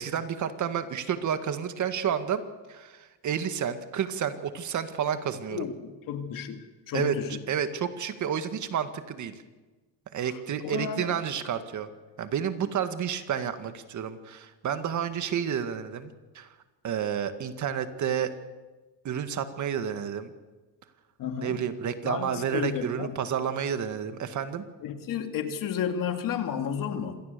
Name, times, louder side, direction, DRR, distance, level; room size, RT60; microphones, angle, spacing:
voice 1, 0.0-2.4 2.7-5.7 6.9-7.2 7.5-9.4 10.1-11.9 12.2-16.5 16.8-18.3 19.0-20.3 21.4-24.6, right 8 dB, 40° right, 9 dB, 1.9 m, -30 dB
voice 2, 5.5-7.4 10.3-11.1 21.2-21.6 22.0-23.2 24.8-27.2, left 8 dB, 50° left, 6 dB, 2.5 m, -32 dB
26.5 x 18.0 x 6.9 m, 1.2 s
supercardioid pair, 115°, 43 cm